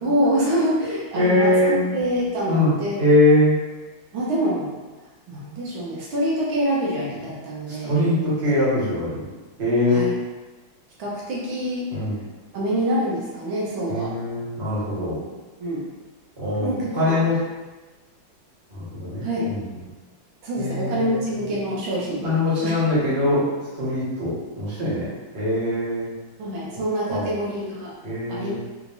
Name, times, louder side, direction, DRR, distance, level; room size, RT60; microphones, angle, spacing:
voice 1, 0.0-3.0 4.1-4.7 5.3-7.9 9.9-10.1 11.0-11.9 12.5-14.1 15.3-15.8 16.6-17.3 19.2-19.5 20.4-22.3 22.6-22.7 26.4-27.9 28.3-28.6, equal, 85° right, -5 dB, 1.7 m, -26 dB
voice 2, 1.1-1.8 2.5-3.5 7.8-9.3 9.6-10.1 11.9-12.1 13.9-15.2 16.4-17.3 18.7-19.6 20.6-21.2 22.2-23.4 23.7-25.1 25.3-26.1 27.1-27.3 28.0-28.6, left 1 dB, 35° right, -9 dB, 1.6 m, -22 dB
4.7 x 3.2 x 2.6 m, 1.2 s
omnidirectional pair, 2.1 m